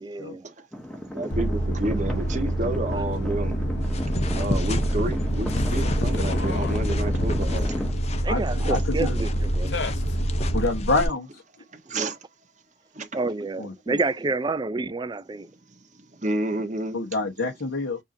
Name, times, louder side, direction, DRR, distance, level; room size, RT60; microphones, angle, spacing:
voice 1, 0.0-0.5 8.2-9.7 11.9-12.1 13.1-15.5, right 3 dB, 20° right, 0.3 m, -29 dB
sound 1, 0.7-7.9, equal, 5° left, 0.8 m, -35 dB
voice 2, 1.1-3.6 4.3-7.7 11.9-12.2 12.9-13.1 16.2-17.0, right 2 dB, 40° right, 1.3 m, -30 dB
sound 2, 1.3-10.6, equal, 65° left, 0.9 m, -26 dB
sound 3, 3.8-11.1, left 1 dB, 35° left, 0.7 m, -32 dB
voice 3, 8.3-9.1 10.5-11.4 13.6-13.9 16.9-18.0, left 2 dB, 85° left, 1.3 m, -27 dB
7.0 x 2.8 x 2.7 m
head